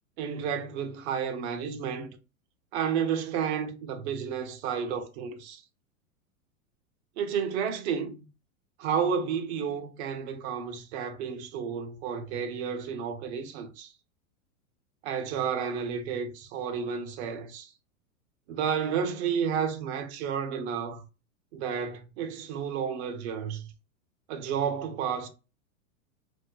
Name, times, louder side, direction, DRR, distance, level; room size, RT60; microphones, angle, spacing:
voice 1, 0.2-2.1 2.7-5.6 7.2-8.3 8.8-13.9 15.0-17.7 18.5-21.0 21.5-23.7 24.3-25.3, right 7 dB, 50° right, 0.7 m, -31 dB
2.7 x 2.1 x 3.7 m
hypercardioid pair, 115°, 42 cm